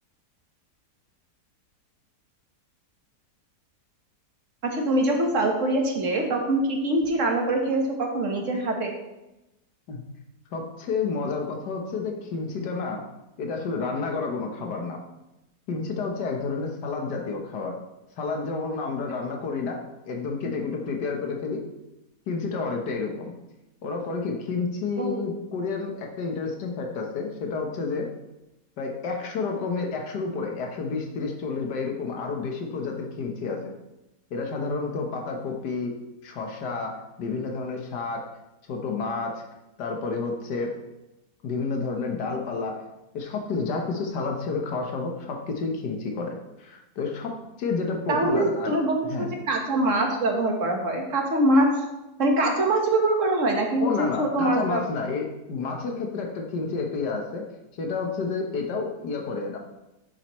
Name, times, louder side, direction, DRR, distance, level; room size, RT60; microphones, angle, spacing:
voice 1, 4.7-8.9 25.0-25.3 48.1-51.7 52.2-54.8, right 1 dB, 50° right, 2 dB, 1.7 m, -24 dB
voice 2, 10.5-13.0 13.4-15.0 15.7-17.8 18.2-21.6 22.3-23.3 23.8-28.1 28.8-33.6 34.3-35.9 36.2-38.3 38.7-39.4 39.8-40.7 41.4-42.8 43.1-47.3 47.6-48.8 49.1-49.3 53.8-57.4 57.8-59.6, left 4 dB, 90° left, 1 dB, 1.7 m, -30 dB
9.7 x 7.4 x 3.1 m, 0.95 s
omnidirectional pair, 1.7 m